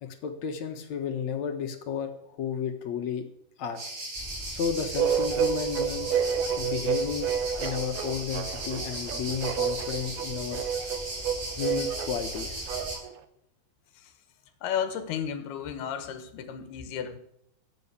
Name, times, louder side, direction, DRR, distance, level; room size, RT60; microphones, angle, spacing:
voice 1, 0.0-3.3 3.6-3.8 4.5-6.2 6.6-7.3 7.6-10.6 11.6-12.7, left 7 dB, 55° left, 6 dB, 2.3 m, -32 dB
sound 1, 3.8-13.0, right 2 dB, 65° right, 7.3 m, -37 dB
sound 2, 4.1-13.0, left 1 dB, ahead, 3.7 m, -44 dB
sound 3, 5.0-13.2, right 8 dB, 85° right, 2.9 m, -30 dB
voice 2, 14.6-17.2, left 8 dB, 90° left, 10 dB, 3.5 m, -33 dB
15.5 x 8.7 x 8.4 m, 0.74 s
omnidirectional pair, 4.4 m